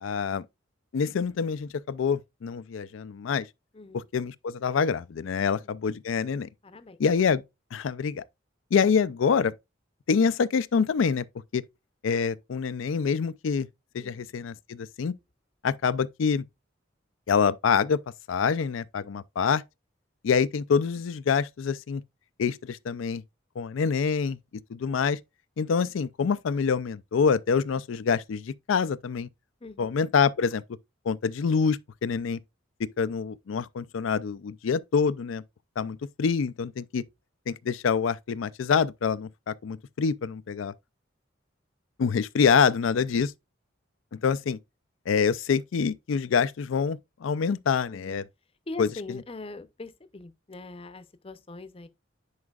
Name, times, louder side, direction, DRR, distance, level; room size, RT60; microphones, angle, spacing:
voice 1, 0.0-0.5 0.9-3.5 3.9-6.5 7.0-7.4 7.7-8.2 8.7-9.5 10.1-11.3 11.5-11.6 12.0-13.7 13.9-15.1 15.6-16.4 17.3-18.0 18.3-19.6 20.2-22.0 22.4-23.2 23.6-24.4 24.7-25.2 25.6-29.3 29.8-30.6 31.1-32.4 32.8-35.4 35.8-37.0 37.5-40.7 42.0-43.3 44.1-44.6 45.1-48.2 48.8-48.9, left 6 dB, 80° left, 0.4 m, -26 dB
voice 2, 3.7-4.1 5.3-5.7 6.6-7.0 14.0-14.3 29.6-29.9 47.9-48.2 48.7-51.9, left 2 dB, 30° left, 0.6 m, -42 dB
9.6 x 4.9 x 2.4 m
head